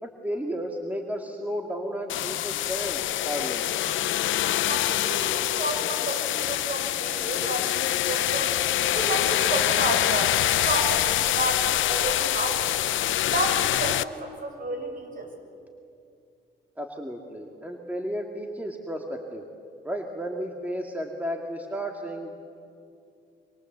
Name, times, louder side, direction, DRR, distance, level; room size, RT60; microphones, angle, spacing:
voice 1, 0.0-3.7 16.8-19.4 19.8-22.4, equal, 10° right, 2 dB, 2.3 m, -33 dB
sound 1, 2.1-14.0, left 13 dB, 75° left, 0.7 m, -25 dB
voice 2, 4.7-8.5 8.9-12.6 13.2-15.3, right 2 dB, 45° right, 3 dB, 6.5 m, -31 dB
26.0 x 25.0 x 8.1 m, 2.5 s
cardioid pair, 90°, 20 cm